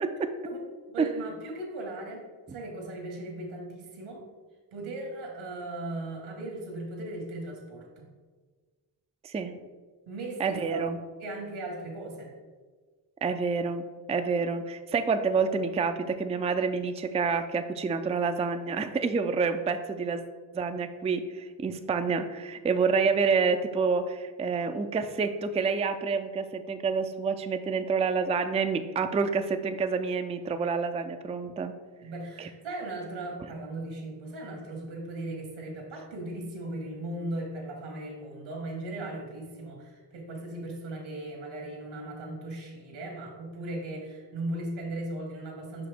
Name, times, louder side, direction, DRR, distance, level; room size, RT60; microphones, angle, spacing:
voice 1, 0.9-2.2 2.5-4.2 4.7-8.1 10.1-10.8 11.2-12.3 32.0-45.9, right 2 dB, 85° right, 1 dB, 1.6 m, -37 dB
voice 2, 10.4-11.0 13.2-20.2 20.5-31.7 32.4-32.5, right 5 dB, 15° right, 7 dB, 0.3 m, -28 dB
5.5 x 5.0 x 3.4 m, 1.4 s
supercardioid pair, 55°, 47 cm